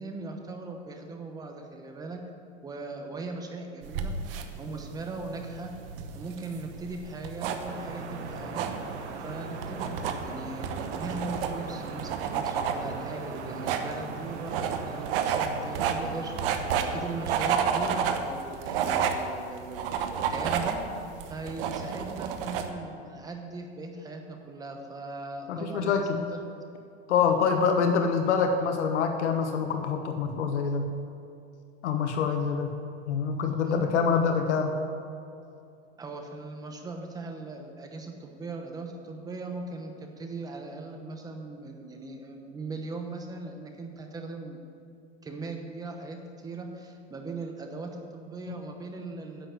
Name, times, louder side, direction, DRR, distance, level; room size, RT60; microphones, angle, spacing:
voice 1, 0.0-2.2 2.6-5.7 6.1-8.7 9.2-20.8 21.3-26.4 33.6-34.2 36.0-44.6 45.2-49.5, right 3 dB, 10° right, 3 dB, 0.9 m, -39 dB
sound 1, 3.8-22.7, right 7 dB, 55° right, 1.1 m, -31 dB
sound 2, 7.7-17.4, right 4 dB, 90° right, 1.5 m, -39 dB
voice 2, 25.5-26.3 27.1-30.9 31.8-32.7 33.1-34.8 48.5-48.6, left 6 dB, 85° left, 5 dB, 1.3 m, -26 dB
10.5 x 7.8 x 7.8 m, 2.5 s
supercardioid pair, 155°, 34 cm